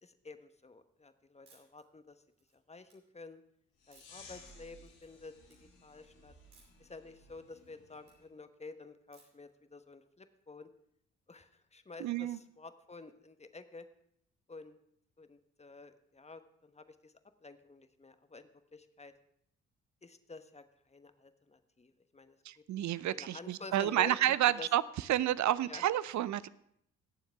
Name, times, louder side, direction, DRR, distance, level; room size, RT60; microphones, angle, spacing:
voice 1, 0.0-2.2 2.5-3.4 3.9-5.3 5.6-6.3 6.8-10.7 11.3-13.8 14.5-14.8 15.2-17.1 17.4-19.1 20.0-22.4 22.8-24.7 25.6-25.9, left 3 dB, 20° left, 10 dB, 1.1 m, -50 dB
sound 1, 1.5-1.8 2.3-2.9 3.9-4.3 4.8-5.2 5.4-5.6 6.5-6.9 7.3-8.2 9.1-9.5, right 4 dB, 85° right, 2.9 m, -65 dB
sound 2, 3.8-8.2, left 2 dB, 80° left, 2.2 m, -57 dB
voice 2, 12.0-12.4 22.5-24.8 25.1-26.5, right 12 dB, 50° right, 18 dB, 0.5 m, -30 dB
18.5 x 7.1 x 3.5 m, 0.72 s
hypercardioid pair, 45°, 36 cm